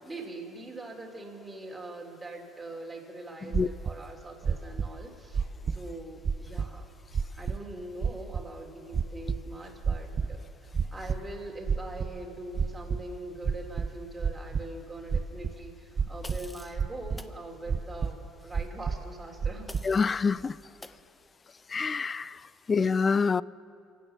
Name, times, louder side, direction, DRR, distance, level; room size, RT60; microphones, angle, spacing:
voice 1, 0.0-6.9 7.3-19.7, right 2 dB, 15° right, -1 dB, 3.0 m, -42 dB
sound 1, 3.5-3.9 4.4-4.9 5.3-5.9 6.2-6.7 7.1-7.6 8.0-8.4 8.9-9.4 9.8-10.4 10.7-11.2 11.7-12.2 12.5-13.0 13.4-14.6 15.1-15.5 16.0-16.5 16.8-17.2 17.7-18.1 18.5-19.1 19.4-19.8, right 6 dB, 40° right, 0.6 m, -29 dB
sound 2, 16.2-16.8 17.2-17.4 19.7-20.3 20.8-21.0, left 2 dB, 15° left, 0.7 m, -47 dB
voice 2, 19.8-20.6 21.7-22.4 22.7-23.4, left 5 dB, 30° left, 21 dB, 0.3 m, -26 dB
24.5 x 8.3 x 7.0 m, 2.6 s
supercardioid pair, 75°, 0 cm